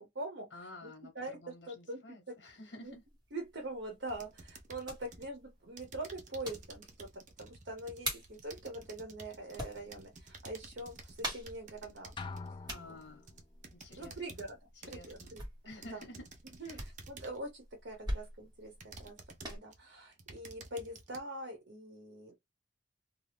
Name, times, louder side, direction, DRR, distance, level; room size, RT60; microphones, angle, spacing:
voice 1, 0.0-2.0 2.8-2.9 3.3-7.1 7.4-12.1 12.6-12.7 14.0-14.6 14.9-15.4 15.8-16.0 16.6-19.2 19.5-22.3, right 1 dB, 75° right, 0.8 m, -44 dB
voice 2, 0.5-3.0 12.7-13.3 13.7-14.4 14.8-15.3 15.6-16.2 16.6-16.8, left 1 dB, 80° left, 1.0 m, -51 dB
sound 1, 2.8-19.6, right 1 dB, 25° right, 1.4 m, -46 dB
sound 2, 4.1-5.3 5.8-12.5 13.0-14.5 14.8-15.5 15.8-17.5 18.1-18.2 18.8-19.8 20.1-21.2, right 3 dB, 45° right, 0.6 m, -52 dB
sound 3, 12.2-13.6, left 4 dB, 25° left, 0.3 m, -45 dB
2.6 x 2.3 x 3.3 m
head